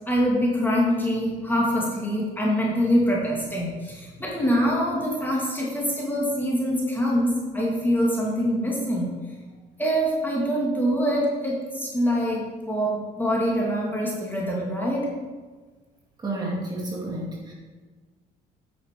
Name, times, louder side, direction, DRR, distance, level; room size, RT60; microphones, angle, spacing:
voice 1, 0.1-9.1 9.8-15.1, equal, 10° left, -4 dB, 2.2 m, -24 dB
voice 2, 16.2-17.5, right 1 dB, 25° right, -4 dB, 2.3 m, -31 dB
9.5 x 5.7 x 4.8 m, 1.4 s
cardioid pair, 110°, 17 cm